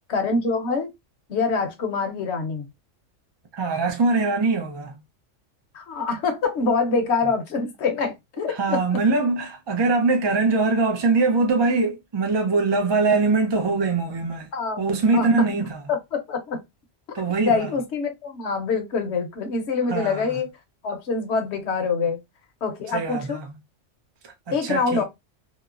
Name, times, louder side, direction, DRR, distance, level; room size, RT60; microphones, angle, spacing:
voice 1, 0.1-0.9 1.3-2.7 5.7-8.8 14.5-15.5 15.9-16.6 17.1-20.5 20.8-22.2 22.6-23.4 24.5-25.0, left 4 dB, 65° left, 1.0 m, -25 dB
voice 2, 3.5-5.0 8.4-14.5 14.8-15.8 17.1-17.7 19.9-20.3 22.9-23.5 24.5-25.0, right 3 dB, 40° right, 0.3 m, -22 dB
2.9 x 2.0 x 2.4 m
omnidirectional pair, 1.3 m